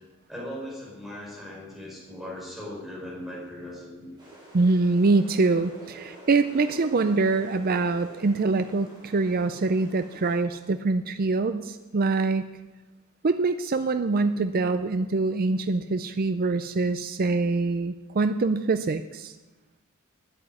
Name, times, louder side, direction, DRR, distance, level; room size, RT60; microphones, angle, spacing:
voice 1, 0.3-4.1, left 1 dB, ahead, -4 dB, 4.5 m, -38 dB
sound 1, 4.2-10.4, right 1 dB, 20° right, 4.8 m, -47 dB
voice 2, 4.5-12.5 13.2-19.4, right 3 dB, 40° right, 9 dB, 0.5 m, -24 dB
9.7 x 9.0 x 9.4 m, 1.1 s
head